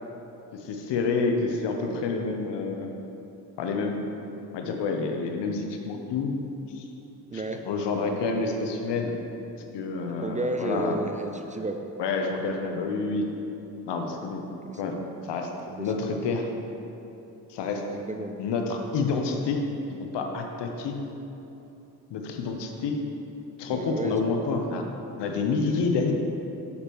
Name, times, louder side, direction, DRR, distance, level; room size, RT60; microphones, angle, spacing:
voice 1, 0.5-2.9 3.6-4.0 4.5-6.4 6.7-6.9 7.3-9.1 9.7-11.0 12.0-13.3 13.9-14.4 14.8-15.0 15.3-15.5 15.8-16.5 17.5-17.8 18.4-19.6 19.9-21.0 22.1-23.0 23.6-24.8 25.2-26.1, left 4 dB, 70° left, 3 dB, 0.9 m, -28 dB
voice 2, 7.3-7.7 10.2-11.9 14.7-15.1 15.7-15.9 17.9-18.4 23.7-24.2 24.5-24.6, right 2 dB, 20° right, 5 dB, 0.4 m, -33 dB
7.0 x 6.6 x 3.1 m, 3.0 s
hypercardioid pair, 45°, 43 cm